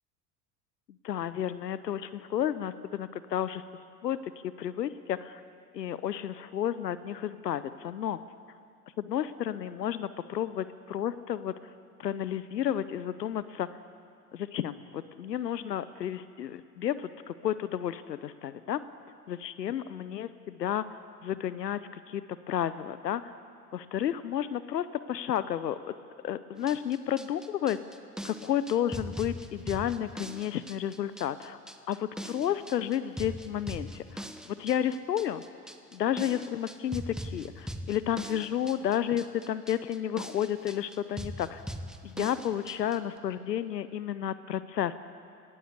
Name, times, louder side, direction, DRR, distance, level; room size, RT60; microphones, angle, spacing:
voice 1, 1.0-3.6 4.0-4.2 4.6-5.4 5.7-8.2 9.0-11.5 12.0-13.7 14.3-18.8 19.3-20.8 21.2-21.8 22.1-23.3 23.7-25.8 26.2-27.8 28.2-31.6 31.9-35.4 35.9-41.6 42.0-45.0, left 10 dB, 85° left, 14 dB, 0.8 m, -31 dB
sound 1, 26.6-43.0, equal, ahead, 1.2 m, -41 dB
20.5 x 17.0 x 8.0 m, 2.3 s
hypercardioid pair, 75°, 48 cm